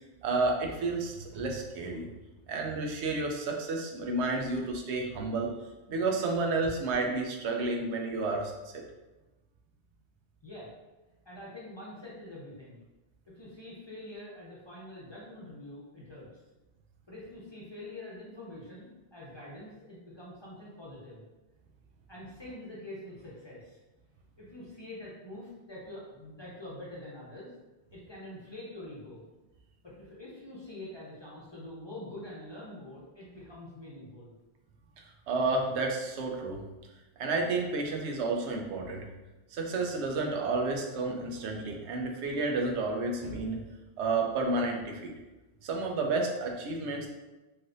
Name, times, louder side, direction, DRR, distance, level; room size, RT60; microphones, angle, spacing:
voice 1, 0.2-2.1 2.5-5.5 5.9-8.8 35.3-36.6 37.2-39.1 39.5-43.6 44.0-45.1 45.6-47.1, right 3 dB, 85° right, 1 dB, 0.9 m, -31 dB
voice 2, 11.2-12.8 13.3-16.3 17.1-21.2 22.1-23.8 24.4-27.5 27.9-29.2 29.8-34.3, left 1 dB, 30° left, -7 dB, 0.5 m, -45 dB
3.2 x 2.6 x 2.5 m, 1.1 s
omnidirectional pair, 1.1 m